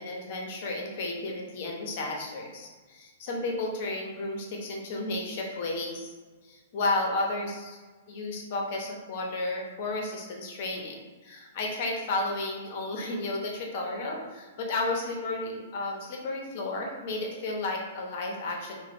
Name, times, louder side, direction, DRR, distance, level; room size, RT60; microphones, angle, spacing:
voice 1, 0.0-6.1 6.4-7.8 8.1-18.8, left 2 dB, 50° left, 0 dB, 0.7 m, -33 dB
2.9 x 2.1 x 3.4 m, 1.4 s
hypercardioid pair, 150°, 0 cm